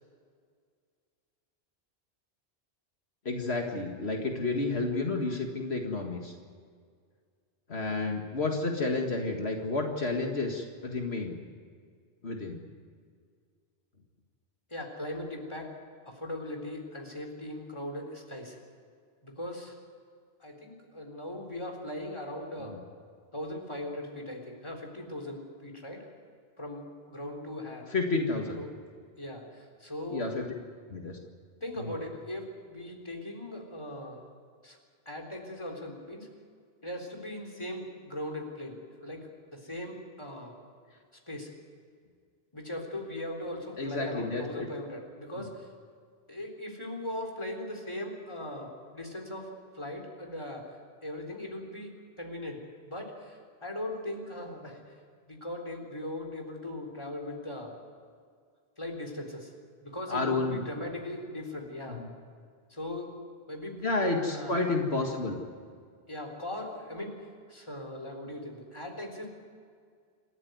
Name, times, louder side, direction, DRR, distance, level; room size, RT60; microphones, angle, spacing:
voice 1, 3.3-6.3 7.7-11.4 12.2-12.6 22.7-22.8 27.8-28.6 30.1-30.5 30.9-31.2 31.8-31.9 43.8-44.7 45.4-45.5 60.1-60.6 61.9-62.1 63.8-65.4, left 3 dB, 75° left, 2 dB, 2.2 m, -31 dB
voice 2, 14.7-15.7 16.1-18.6 19.2-19.8 20.4-22.7 23.3-26.1 26.6-27.9 28.6-28.7 29.2-30.3 31.6-34.2 34.6-34.8 35.1-36.3 36.8-40.6 41.3-41.5 42.5-45.7 46.3-50.7 51.0-54.8 55.3-57.7 58.8-59.5 59.8-62.0 62.7-63.1 63.5-63.8 64.2-64.6 66.1-67.2 67.5-69.3, left 1 dB, 25° left, 2 dB, 3.9 m, -39 dB
27.5 x 14.0 x 9.5 m, 2.1 s
omnidirectional pair, 1.1 m